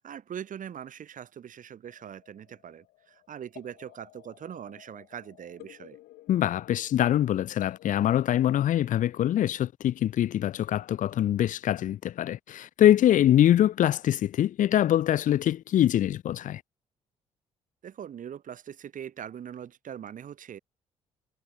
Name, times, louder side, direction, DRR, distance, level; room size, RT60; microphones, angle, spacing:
voice 1, 0.0-6.0 17.8-20.6, right 9 dB, 60° right, 6.2 m, -42 dB
sound 1, 1.8-8.5, left 17 dB, 80° left, 6.7 m, -53 dB
voice 2, 6.3-16.6, left 11 dB, 60° left, 0.6 m, -24 dB
hypercardioid pair, 50°, 15 cm